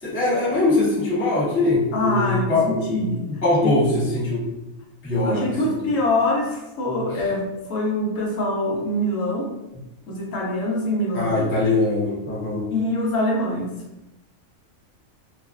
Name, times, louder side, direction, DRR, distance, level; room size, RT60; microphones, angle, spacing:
voice 1, 0.0-2.9 3.3-4.5 5.0-5.9 11.1-12.7, left 2 dB, 15° left, -8 dB, 0.4 m, -22 dB
voice 2, 1.9-3.8 5.2-9.6 10.1-11.5 12.7-13.8, left 1 dB, 75° left, -2 dB, 0.9 m, -24 dB
2.4 x 2.3 x 2.3 m, 0.98 s
omnidirectional pair, 1.4 m